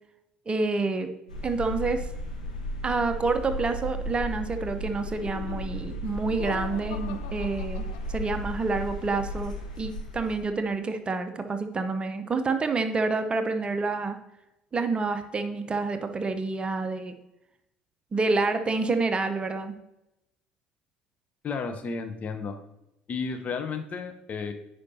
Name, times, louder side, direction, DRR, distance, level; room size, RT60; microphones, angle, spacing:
voice 1, 0.5-1.1 1.4-2.1 2.8-14.2 14.7-17.1 18.1-19.7, right 3 dB, 25° right, 8 dB, 0.7 m, -28 dB
sound 1, 1.3-10.4, equal, 85° left, 1.0 m, -35 dB
Laughter, 4.9-8.6, left 11 dB, 65° left, 0.4 m, -44 dB
voice 2, 21.4-22.5 23.1-24.5, left 5 dB, 40° left, 7 dB, 0.9 m, -32 dB
9.6 x 5.0 x 2.8 m, 0.89 s
figure-of-eight pair, 60°, 4 cm